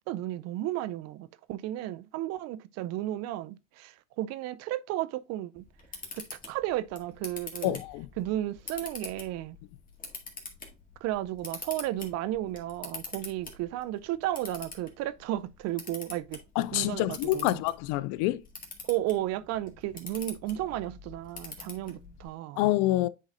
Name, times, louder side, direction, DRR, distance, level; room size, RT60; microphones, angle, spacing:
voice 1, 0.1-5.6 6.1-7.8 8.2-9.6 11.0-16.4 16.7-17.6 18.8-22.6, right 14 dB, 45° right, 0.4 m, -33 dB
Camera, 5.6-22.3, left 3 dB, 20° left, 1.8 m, -46 dB
voice 2, 7.6-8.1 16.6-18.4 22.6-23.1, left 16 dB, 55° left, 0.5 m, -27 dB
9.8 x 3.9 x 2.5 m
hypercardioid pair, 85°, 38 cm